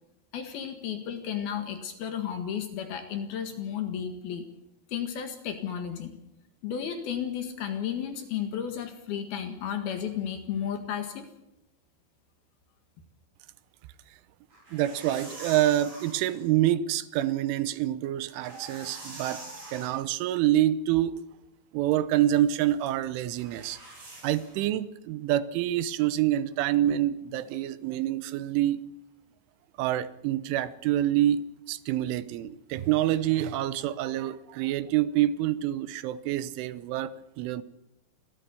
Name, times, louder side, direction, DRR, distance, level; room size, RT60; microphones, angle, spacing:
voice 1, 0.3-4.5 4.9-6.1 6.6-11.3, left 8 dB, 60° left, 6 dB, 3.3 m, -33 dB
sound 1, 14.5-16.4 18.2-19.9 23.4-24.7, right 2 dB, 35° right, 6.8 m, -44 dB
voice 2, 14.7-21.2 21.7-23.8 24.2-28.8 29.8-31.4 31.7-37.6, right 13 dB, 85° right, 15 dB, 3.3 m, -27 dB
29.5 x 13.0 x 7.0 m, 0.90 s
omnidirectional pair, 5.5 m